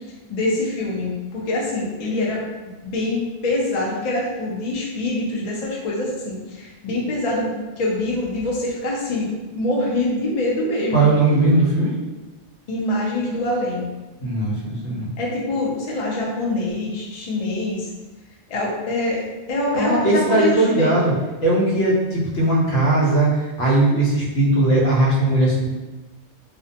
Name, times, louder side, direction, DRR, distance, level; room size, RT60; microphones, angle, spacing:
voice 1, 0.3-2.4 2.8-11.1 12.7-13.9 15.2-17.9 18.5-19.2 19.5-20.9, left 1 dB, 45° left, -3 dB, 0.5 m, -24 dB
voice 2, 10.9-11.9 14.2-15.1 19.7-21.1 21.4-25.7, right 2 dB, 85° left, -5 dB, 1.1 m, -18 dB
2.3 x 2.1 x 2.7 m, 1.1 s
omnidirectional pair, 1.2 m